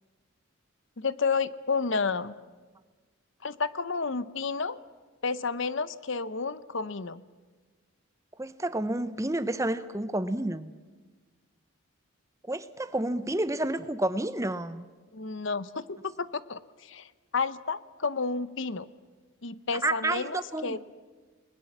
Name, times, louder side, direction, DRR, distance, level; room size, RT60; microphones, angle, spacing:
voice 1, 1.0-2.3 3.4-4.8 5.2-7.2 15.1-18.9 19.4-20.8, left 4 dB, 60° left, 15 dB, 0.8 m, -31 dB
voice 2, 8.4-10.7 12.5-14.8 19.8-20.8, right 1 dB, 15° right, 13 dB, 0.7 m, -30 dB
29.0 x 21.0 x 7.3 m, 1.3 s
head